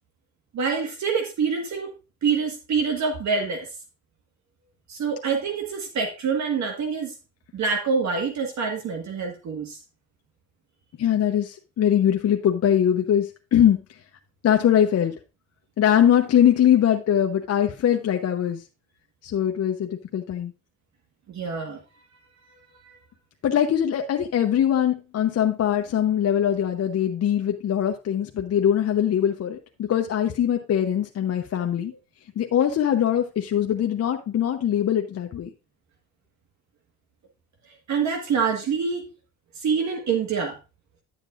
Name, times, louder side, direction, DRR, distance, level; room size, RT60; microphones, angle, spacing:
voice 1, 0.5-1.9 2.2-3.7 4.9-7.1 7.5-9.8 21.3-21.8 37.9-39.0 39.6-40.6, right 5 dB, 65° right, 3 dB, 1.6 m, -26 dB
voice 2, 11.0-13.8 14.4-15.2 15.8-18.6 19.2-20.5 23.4-31.9 32.4-35.5, left 10 dB, 55° left, 3 dB, 0.8 m, -22 dB
10.0 x 7.3 x 2.5 m, 0.29 s
cardioid pair, 90°, 30 cm